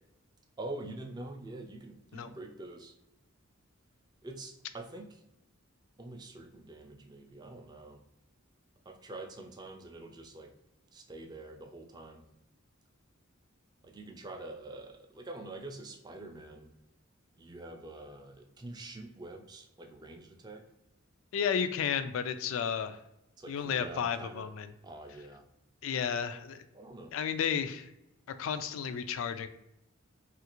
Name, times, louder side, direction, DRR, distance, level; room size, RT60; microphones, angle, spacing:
voice 1, 0.6-2.9 4.2-5.2 6.0-8.0 8.9-10.5 10.9-12.2 13.8-16.7 17.4-20.6 23.4-24.5 24.8-25.4 26.7-27.1, right 2 dB, 20° right, 4 dB, 0.3 m, -45 dB
voice 2, 21.3-23.0 23.5-24.7 25.8-26.6 27.1-27.9 28.4-29.5, left 7 dB, 75° left, 10 dB, 0.3 m, -32 dB
3.2 x 2.4 x 2.9 m, 0.88 s
head